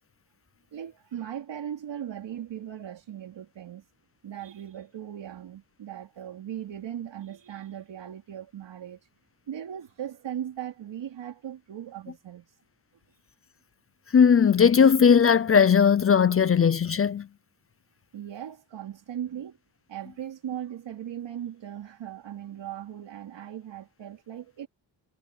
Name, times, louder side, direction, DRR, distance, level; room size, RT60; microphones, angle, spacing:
voice 1, 0.7-3.8 4.2-9.0 9.5-12.5 18.1-19.6 19.9-24.7, right 10 dB, 75° right, 3.4 m, -38 dB
voice 2, 14.1-17.3, left 7 dB, 30° left, 0.5 m, -18 dB
wide cardioid pair, 150°, 44 cm